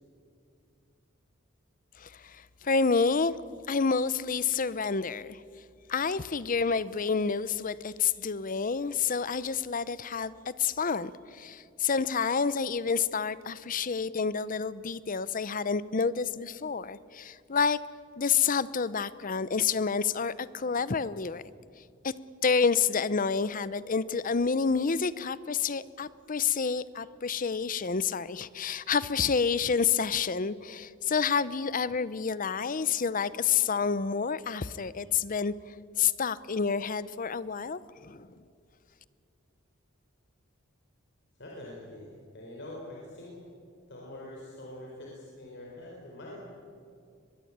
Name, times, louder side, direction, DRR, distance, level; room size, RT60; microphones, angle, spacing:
voice 1, 2.0-3.3 3.7-5.4 5.9-10.3 10.6-17.8 18.2-21.4 22.0-22.1 22.4-35.5 36.0-38.3, left 5 dB, 40° left, 17 dB, 0.7 m, -29 dB
voice 2, 41.4-43.4 43.9-46.5, left 1 dB, 60° left, -3 dB, 4.8 m, -44 dB
23.5 x 20.5 x 8.8 m, 2.4 s
head